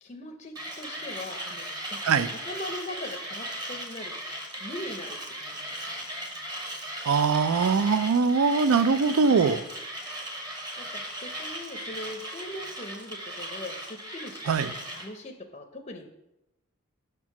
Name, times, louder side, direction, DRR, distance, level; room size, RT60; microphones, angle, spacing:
voice 1, 0.0-4.1 4.6-5.9 9.3-9.7 10.8-16.1, left 1 dB, 30° left, 4 dB, 0.5 m, -41 dB
Mechanisms, 0.6-15.1, right 1 dB, 20° right, 0.9 m, -37 dB
voice 2, 7.1-9.6 14.5-14.7, right 5 dB, 80° right, 14 dB, 0.4 m, -22 dB
6.0 x 4.5 x 5.8 m, 0.90 s
head